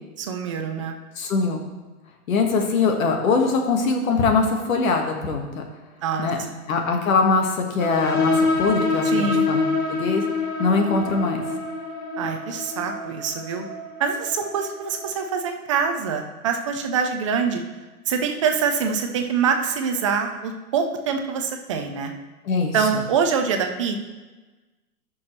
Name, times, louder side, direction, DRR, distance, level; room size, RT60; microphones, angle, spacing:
voice 1, 0.2-1.0 6.0-6.6 9.0-9.5 12.2-13.6 14.0-17.6 18.1-22.1 22.7-24.0, right 6 dB, 25° right, 5 dB, 0.4 m, -25 dB
voice 2, 1.2-1.6 2.3-5.6 6.2-6.4 6.7-10.2 10.6-11.4 22.5-22.8, left 4 dB, 65° left, 3 dB, 1.8 m, -22 dB
sound 1, 7.8-15.1, left 3 dB, 20° left, 1.2 m, -26 dB
14.0 x 6.0 x 3.3 m, 1.2 s
hypercardioid pair, 150°, 44 cm